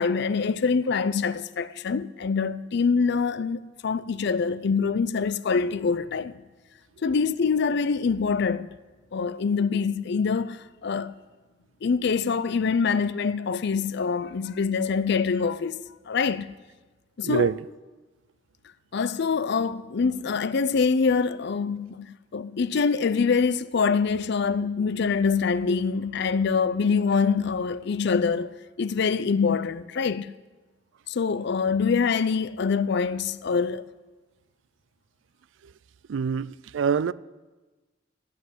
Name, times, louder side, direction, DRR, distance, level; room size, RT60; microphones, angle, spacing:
voice 1, 0.0-6.3 7.0-8.7 9.1-11.1 11.8-16.5 17.2-17.5 18.9-30.3 31.1-33.8, left 5 dB, 60° left, 0.5 m, -25 dB
voice 2, 17.2-17.6 36.1-37.1, right 6 dB, 70° right, 0.4 m, -25 dB
14.5 x 6.2 x 9.7 m
head